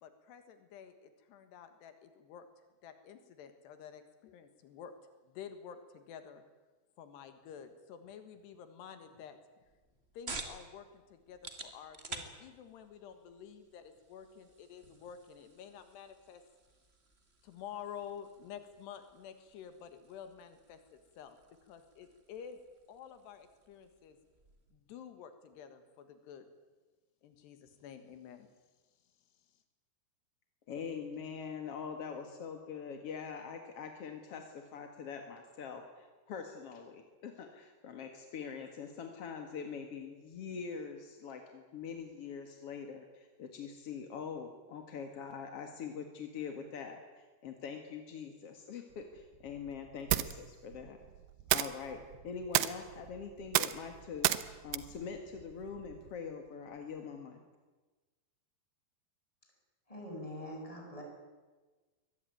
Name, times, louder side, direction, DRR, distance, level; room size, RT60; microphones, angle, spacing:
voice 1, 0.0-2.4 2.8-4.9 5.3-6.4 7.0-9.4 10.2-16.4 17.4-20.8 21.2-21.4 21.6-22.6 22.9-24.2 24.7-26.5 27.2-28.5, left 8 dB, 80° left, 9 dB, 3.7 m, -50 dB
sound 1, 9.6-24.8, right 3 dB, 25° right, 1.3 m, -52 dB
voice 2, 30.7-51.0 51.5-54.3 54.6-57.4, left 6 dB, 50° left, 5 dB, 2.0 m, -43 dB
sound 2, 48.9-56.2, right 14 dB, 80° right, 3.0 m, -35 dB
voice 3, 59.9-61.0, left 1 dB, 10° left, 0 dB, 6.5 m, -43 dB
23.5 x 19.5 x 9.3 m, 1.3 s
omnidirectional pair, 4.8 m